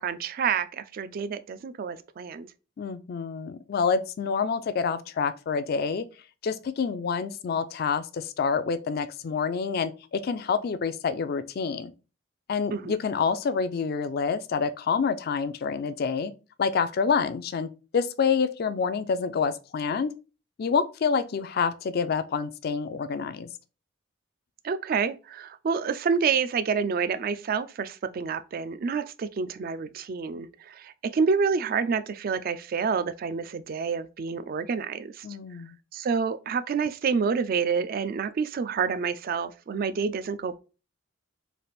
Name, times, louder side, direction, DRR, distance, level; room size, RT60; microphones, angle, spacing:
voice 1, 0.0-2.5 12.7-12.9 24.6-35.2 35.9-40.5, right 5 dB, 45° right, 0.3 m, -28 dB
voice 2, 2.8-6.1 6.4-11.9 12.5-16.3 16.6-20.1 20.6-23.5 35.2-35.8, left 5 dB, 50° left, 0.3 m, -27 dB
3.4 x 2.4 x 4.0 m
head